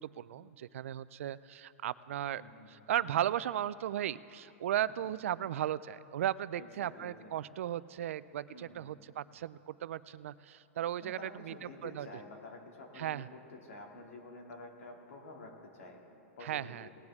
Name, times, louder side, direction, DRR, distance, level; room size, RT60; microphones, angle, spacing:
voice 1, 0.0-2.4 2.7-11.5 11.8-12.1 13.0-13.3 16.4-16.9, right 11 dB, 65° right, 17 dB, 0.3 m, -36 dB
voice 2, 2.2-2.9 6.5-7.3 8.5-9.2 11.0-16.9, left 2 dB, 80° left, 0 dB, 2.4 m, -50 dB
19.0 x 9.7 x 3.6 m, 2.6 s
supercardioid pair, 170°, 8 cm